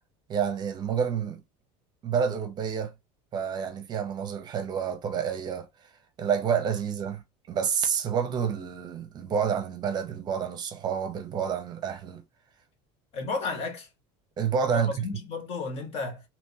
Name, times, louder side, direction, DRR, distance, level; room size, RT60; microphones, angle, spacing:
voice 1, 0.3-1.4 2.0-2.9 3.3-5.7 6.2-7.2 7.5-12.2 14.4-15.1, right 7 dB, 30° right, 0.7 m, -29 dB
voice 2, 13.1-13.9 14.7-16.2, left 4 dB, 45° left, 1.3 m, -33 dB
3.4 x 3.0 x 2.8 m
cardioid pair, 150°, 14 cm